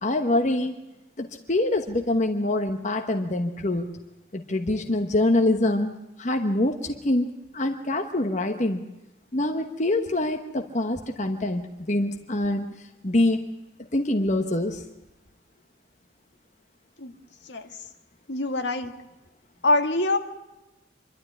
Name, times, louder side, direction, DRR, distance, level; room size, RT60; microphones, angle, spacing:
voice 1, 0.0-0.7 1.2-3.9 4.3-5.9 6.2-8.8 9.3-12.7 13.0-13.4 13.9-14.8, left 1 dB, 40° left, 5 dB, 1.1 m, -25 dB
voice 2, 18.3-18.9 19.6-20.2, left 2 dB, 75° left, 6 dB, 1.8 m, -23 dB
26.0 x 12.0 x 9.9 m, 1.0 s
head